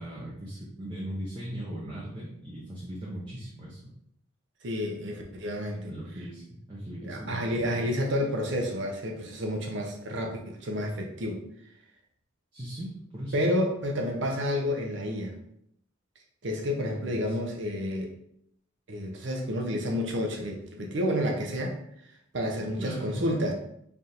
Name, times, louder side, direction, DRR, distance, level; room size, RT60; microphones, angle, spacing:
voice 1, 0.0-3.9 5.9-8.0 12.5-13.4 17.2-17.4 22.8-23.2, equal, 25° right, -6 dB, 0.7 m, -38 dB
voice 2, 4.6-5.9 7.0-11.4 13.3-15.3 16.4-18.1 18.9-21.8 22.3-23.5, equal, 60° right, 2 dB, 0.7 m, -30 dB
3.4 x 2.5 x 4.2 m, 0.72 s
head